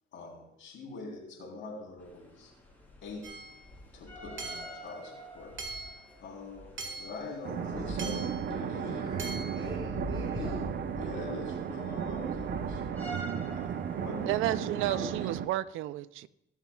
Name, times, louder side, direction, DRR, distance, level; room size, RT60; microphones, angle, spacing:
voice 1, 0.1-2.5 3.0-3.3 3.9-5.6 6.2-8.2 8.5-9.2 10.3-15.3, left 3 dB, 75° left, 3.5 m, -43 dB
sound 1, 2.0-15.4, equal, 10° left, 3.3 m, -45 dB
Hammer / Chink clink, 3.2-3.6 4.4-4.8 5.6-6.0 6.8-7.2 8.0-8.4 9.2-9.6, right 3 dB, 75° right, 1.9 m, -40 dB
sound 2, 7.4-15.4, right 8 dB, 55° right, 0.7 m, -35 dB
voice 2, 7.5-7.9 8.7-10.6, equal, 25° right, 4.4 m, -44 dB
voice 3, 14.3-16.3, right 14 dB, 90° right, 0.4 m, -32 dB
21.5 x 7.3 x 2.3 m
cardioid pair, 90°, 20 cm